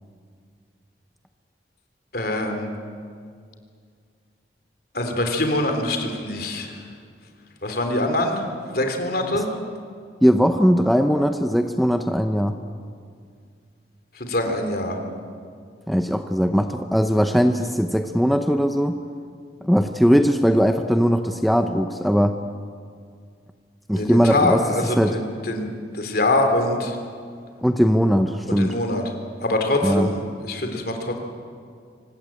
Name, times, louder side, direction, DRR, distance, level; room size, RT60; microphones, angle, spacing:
voice 1, 2.1-2.7 4.9-6.8 7.6-8.5 8.7-9.5 14.2-15.0 23.9-25.7 25.9-27.0 28.5-29.1 29.4-31.2, left 1 dB, 55° left, 4 dB, 3.5 m, -24 dB
voice 2, 10.2-12.5 15.9-19.0 19.6-22.4 23.9-24.6 25.0-25.1 27.6-28.7 29.8-30.1, equal, ahead, 6 dB, 0.7 m, -19 dB
25.5 x 18.5 x 8.8 m, 2.2 s
head